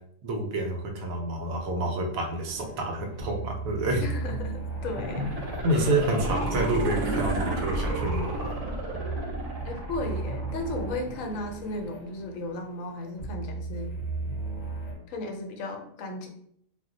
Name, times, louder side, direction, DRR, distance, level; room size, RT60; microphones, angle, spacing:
voice 1, 0.2-4.0 5.0-5.3 5.6-8.5, right 1 dB, 85° right, 2 dB, 1.0 m, -28 dB
sound 1, 2.4-14.9, right 3 dB, 40° left, 0.7 m, -35 dB
voice 2, 4.0-5.3 9.6-13.9 15.1-16.3, left 2 dB, 75° left, 3 dB, 1.0 m, -35 dB
sound 2, 4.7-11.7 12.0-12.1, right 1 dB, 45° right, 0.5 m, -33 dB
2.5 x 2.1 x 3.7 m, 0.68 s
omnidirectional pair, 1.4 m